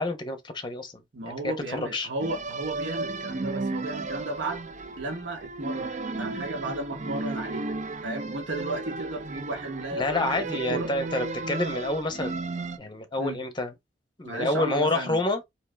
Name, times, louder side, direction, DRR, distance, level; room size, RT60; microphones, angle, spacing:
voice 1, 0.0-1.3 1.7-2.1 9.9-12.4 12.8-13.7 14.2-15.4, left 2 dB, 25° left, 0.9 m, -28 dB
voice 2, 1.1-4.7 5.0-7.7 8.0-10.9 13.2-13.4 14.2-15.2, right 2 dB, 80° right, 1.3 m, -34 dB
sound 1, 2.2-12.8, right 3 dB, 40° right, 0.5 m, -34 dB
3.7 x 3.0 x 3.4 m
head